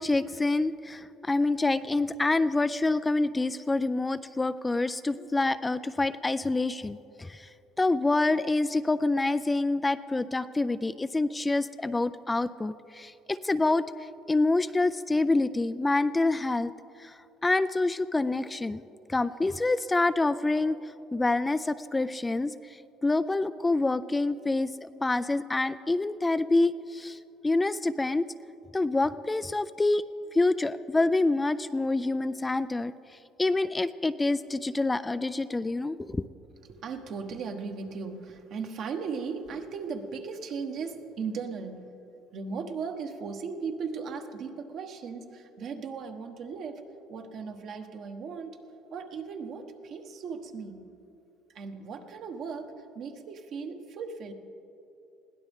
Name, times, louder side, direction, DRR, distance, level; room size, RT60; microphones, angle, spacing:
voice 1, 0.0-7.5 7.8-16.7 17.0-18.8 19.1-20.8 21.1-24.7 25.0-27.2 27.4-28.3 28.7-30.1 30.3-32.9 33.4-36.2, left 2 dB, 15° left, 13 dB, 0.3 m, -27 dB
voice 2, 36.6-41.9 42.3-46.8 47.1-48.6 48.9-50.9 51.5-54.3, right 5 dB, 55° right, 5 dB, 1.3 m, -37 dB
21.5 x 16.0 x 3.6 m, 2.8 s
cardioid pair, 110°, 0 cm